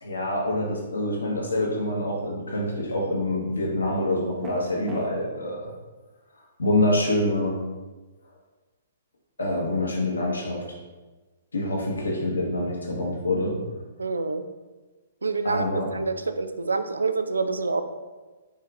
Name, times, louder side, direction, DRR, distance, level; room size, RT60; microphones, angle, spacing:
voice 1, 0.0-5.7 6.6-7.6 9.4-10.6 11.5-13.5 15.4-15.9, left 1 dB, 85° left, -3 dB, 1.2 m, -26 dB
sound 1, 4.4-5.1, right 2 dB, 15° right, 0.7 m, -36 dB
voice 2, 14.0-14.5 15.2-15.6 15.9-17.8, right 4 dB, 85° right, 9 dB, 0.3 m, -27 dB
5.1 x 3.3 x 2.5 m, 1.3 s
hypercardioid pair, 125°, 0 cm